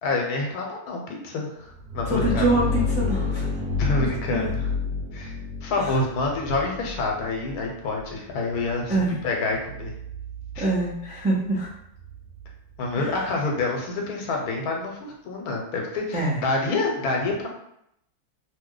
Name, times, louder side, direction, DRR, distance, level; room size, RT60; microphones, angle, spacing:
voice 1, 0.0-2.5 3.8-4.7 5.1-5.3 5.6-8.9 9.2-9.9 10.5-10.6 12.8-17.5, left 3 dB, 80° left, 0 dB, 1.2 m, -27 dB
sound 1, 1.7-13.3, left 4 dB, 90° right, 1.2 m, -31 dB
voice 2, 2.1-3.4 4.0-4.5 8.9-9.2 10.6-11.7 13.0-13.2 16.1-16.4, right 2 dB, 10° right, -6 dB, 0.5 m, -25 dB
2.8 x 2.1 x 3.7 m, 0.76 s
omnidirectional pair, 1.6 m